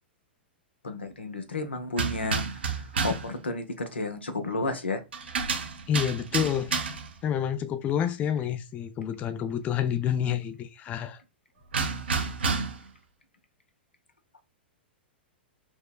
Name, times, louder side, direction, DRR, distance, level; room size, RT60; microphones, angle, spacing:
voice 1, 0.8-5.0 6.4-6.5, left 2 dB, 80° left, 0.7 m, -32 dB
sound 1, 1.9-3.3 5.1-7.2 11.7-12.9, right 5 dB, 75° right, 0.7 m, -30 dB
voice 2, 5.9-6.8 7.2-11.2, left 9 dB, 25° left, 0.3 m, -28 dB
4.6 x 2.1 x 2.3 m
figure-of-eight pair, 105°, 6 cm